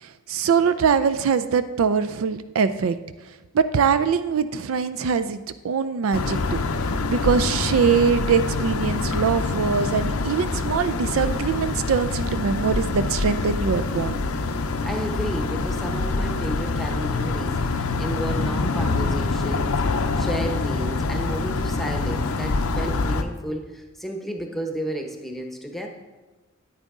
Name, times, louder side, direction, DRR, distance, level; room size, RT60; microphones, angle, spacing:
voice 1, 0.0-3.0 3.5-14.2, right 6 dB, 70° right, 12 dB, 0.4 m, -23 dB
sound 1, 6.1-23.2, left 3 dB, 80° left, 0.6 m, -25 dB
voice 2, 14.8-25.9, right 1 dB, ahead, 3 dB, 0.9 m, -32 dB
9.4 x 9.0 x 3.7 m, 1.2 s
head